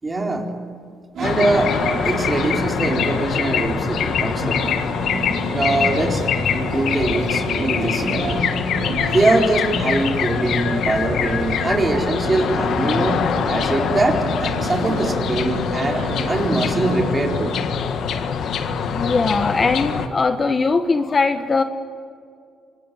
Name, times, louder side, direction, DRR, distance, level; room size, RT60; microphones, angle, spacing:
voice 1, 0.0-0.5 1.2-1.7 2.0-5.0 5.5-6.3 6.5-8.5 9.1-17.6, right 2 dB, 25° right, 2 dB, 4.2 m, -22 dB
sound 1, 1.1-17.5, right 3 dB, 70° right, 4.6 m, -30 dB
sound 2, 1.2-20.1, left 7 dB, 70° left, 1.8 m, -24 dB
voice 2, 17.9-21.6, left 4 dB, 35° left, 8 dB, 1.3 m, -21 dB
25.0 x 19.5 x 9.4 m, 2.3 s
cardioid pair, 90°, 0 cm